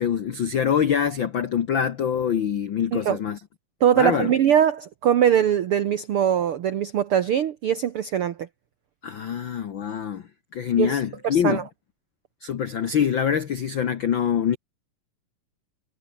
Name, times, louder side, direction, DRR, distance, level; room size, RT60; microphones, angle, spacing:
voice 1, 0.0-3.4 4.0-4.3 9.0-10.2 10.5-11.6 12.4-14.6, left 8 dB, 75° left, 1.1 m, -24 dB
voice 2, 3.8-8.5 10.8-11.0 11.2-11.6, right 9 dB, 75° right, 1.2 m, -21 dB
omnidirectional pair, 4.0 m